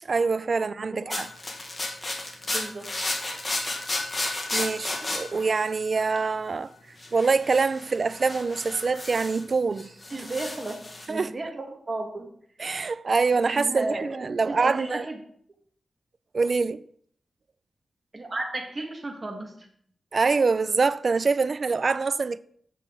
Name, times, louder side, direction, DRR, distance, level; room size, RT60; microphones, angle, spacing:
voice 1, 0.0-1.3 4.5-6.7 7.1-9.9 11.1-11.3 12.6-15.0 16.3-16.8 20.1-22.4, right 4 dB, 50° right, 0.4 m, -25 dB
sound 1, 1.1-6.3 7.0-9.5 9.8-11.1, left 2 dB, 30° left, 1.7 m, -33 dB
voice 2, 2.5-2.9 10.1-12.3 13.5-15.2 18.1-19.7, right 2 dB, 35° right, 1.8 m, -34 dB
8.3 x 6.9 x 3.9 m
wide cardioid pair, 85°, 0 cm